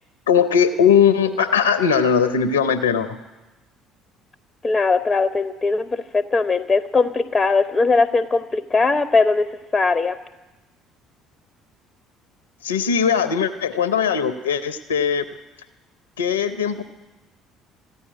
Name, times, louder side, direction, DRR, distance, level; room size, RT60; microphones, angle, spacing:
voice 1, 0.3-3.2 12.6-15.2 16.2-16.8, left 7 dB, 80° left, 13 dB, 0.6 m, -19 dB
voice 2, 4.6-9.5 9.7-10.2, left 3 dB, 20° left, 12 dB, 0.6 m, -20 dB
15.0 x 9.7 x 9.3 m, 1.1 s
figure-of-eight pair, 55°, 0 cm